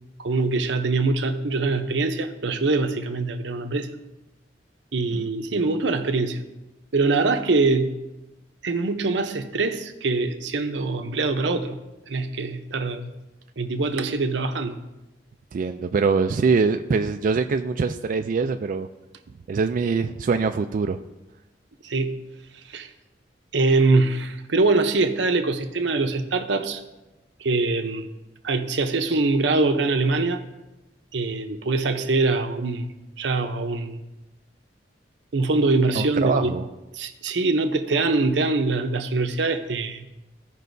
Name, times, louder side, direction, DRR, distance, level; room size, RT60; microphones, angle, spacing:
voice 1, 0.2-3.9 4.9-6.4 6.9-7.9 8.6-11.8 12.1-13.1 13.6-14.8 21.8-22.2 22.7-22.9 23.5-26.8 27.4-28.1 28.4-30.4 31.1-32.9 33.2-34.0 35.3-36.5 36.9-40.0, right 3 dB, 80° right, 7 dB, 0.7 m, -23 dB
voice 2, 15.5-18.9 19.5-21.0 36.0-36.6, right 4 dB, 50° right, 6 dB, 0.3 m, -23 dB
15.5 x 5.4 x 2.7 m, 1.0 s
head